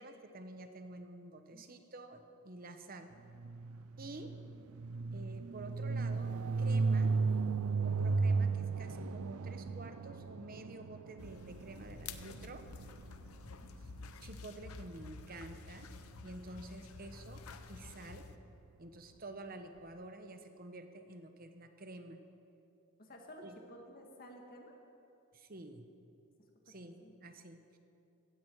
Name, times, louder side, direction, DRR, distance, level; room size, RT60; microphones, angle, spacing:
voice 1, 0.0-3.1 4.0-4.3 5.1-7.1 7.8-12.6 13.8-13.9 14.2-15.9 16.2-17.4 17.7-18.3 18.8-22.2 23.4-23.6 25.3-25.9 26.7-27.8, right 2 dB, 40° right, 7 dB, 1.0 m, -49 dB
voice 2, 1.5-1.9 13.2-13.7 23.0-23.4 23.7-24.7 26.7-27.2, equal, 40° left, 2 dB, 1.9 m, -55 dB
sound 1, 3.3-13.3, right 4 dB, 80° right, 0.5 m, -35 dB
sound 2, 11.2-18.4, left 4 dB, 80° left, 0.8 m, -50 dB
16.5 x 15.5 x 4.7 m, 2.7 s
head